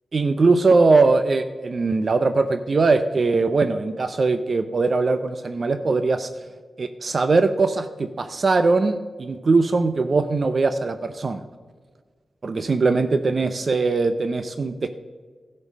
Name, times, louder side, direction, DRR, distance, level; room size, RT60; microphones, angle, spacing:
voice 1, 0.1-6.3 6.8-11.4 12.4-14.9, right 3 dB, 50° right, 10 dB, 0.6 m, -21 dB
12.0 x 5.4 x 7.3 m, 1.5 s
cardioid pair, 75°, 0 cm